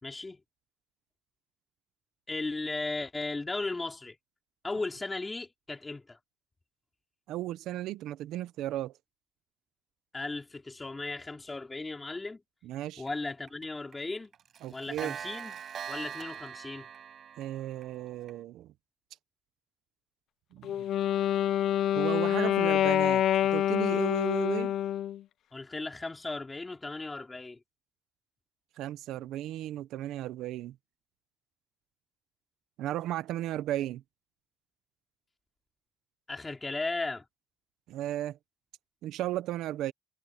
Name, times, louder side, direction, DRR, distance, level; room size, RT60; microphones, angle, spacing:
voice 1, 0.0-0.4 2.3-4.2 4.6-6.2 10.1-12.4 13.0-14.3 14.7-15.6 15.9-16.9 25.5-27.6 36.3-37.2, left 3 dB, 20° left, 3.8 m, -36 dB
voice 2, 7.3-8.9 12.6-13.0 14.6-15.2 17.4-18.7 20.5-20.8 21.9-23.2 23.5-24.7 28.8-30.7 32.8-34.0 37.9-38.4 39.0-39.9, right 14 dB, 90° right, 0.6 m, -35 dB
Clock, 13.1-13.2 13.5-13.7 13.9-14.0 14.3-18.4, right 8 dB, 60° right, 5.7 m, -42 dB
Wind instrument woodwind instrument, 20.6-25.2, left 11 dB, 75° left, 0.5 m, -26 dB
cardioid pair, 90°, 0 cm